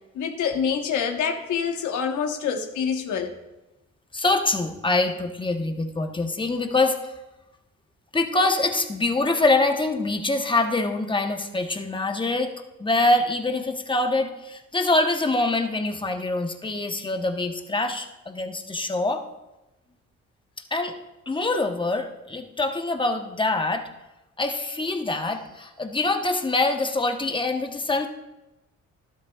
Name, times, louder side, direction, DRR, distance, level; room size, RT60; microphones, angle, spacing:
voice 1, 0.1-3.3, left 7 dB, 75° left, 4 dB, 1.2 m, -26 dB
voice 2, 4.1-7.1 8.1-12.5 12.8-19.2 20.7-20.9 21.3-23.9 24.4-28.1, left 2 dB, 15° left, 5 dB, 1.0 m, -24 dB
12.5 x 11.5 x 2.4 m, 1.0 s
cardioid pair, 90°, 30 cm